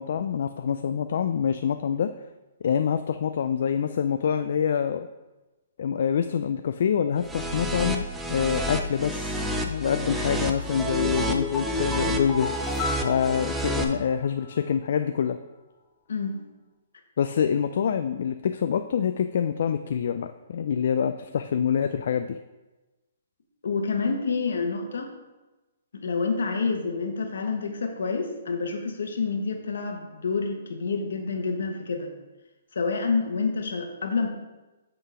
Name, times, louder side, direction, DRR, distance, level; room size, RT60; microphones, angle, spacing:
voice 1, 0.0-2.1 2.6-5.1 5.8-12.5 13.0-15.4 17.2-22.4, left 7 dB, 60° left, 9 dB, 0.3 m, -26 dB
sound 1, 7.2-13.8, right 1 dB, 5° right, 0.5 m, -30 dB
sound 2, 10.8-14.2 14.5-14.6, left 5 dB, 15° left, 1.1 m, -33 dB
voice 2, 16.1-16.4 23.6-25.1 25.9-32.1 32.7-34.3, left 4 dB, 80° left, 3 dB, 1.2 m, -28 dB
8.0 x 3.8 x 4.8 m, 1.1 s
hypercardioid pair, 155°, 0 cm